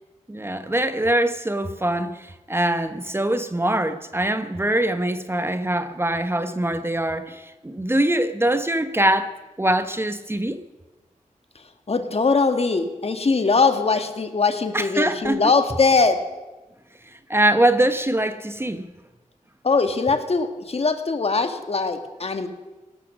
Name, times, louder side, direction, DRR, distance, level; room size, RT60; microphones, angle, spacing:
voice 1, 0.3-9.3 9.6-10.6 14.7-15.4 17.3-18.8, right 1 dB, 15° right, 10 dB, 0.9 m, -23 dB
voice 2, 11.9-16.2 19.6-22.5, left 4 dB, 50° left, 7 dB, 1.7 m, -21 dB
17.5 x 12.5 x 6.3 m, 1.1 s
cardioid pair, 65°, 14 cm